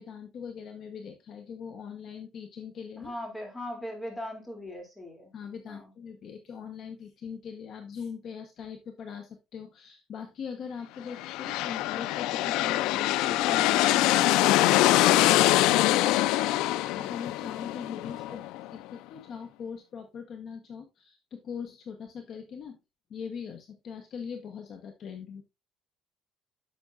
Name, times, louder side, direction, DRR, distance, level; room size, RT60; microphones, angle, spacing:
voice 1, 0.0-3.1 5.3-22.8 23.1-25.4, left 6 dB, 45° left, 1.0 m, -41 dB
voice 2, 3.0-5.3 5.6-5.9 18.3-18.5, left 1 dB, 10° left, 2.7 m, -39 dB
sound 1, 11.1-18.8, left 16 dB, 85° left, 0.3 m, -24 dB
10.5 x 6.9 x 2.5 m
cardioid pair, 165°, 0 cm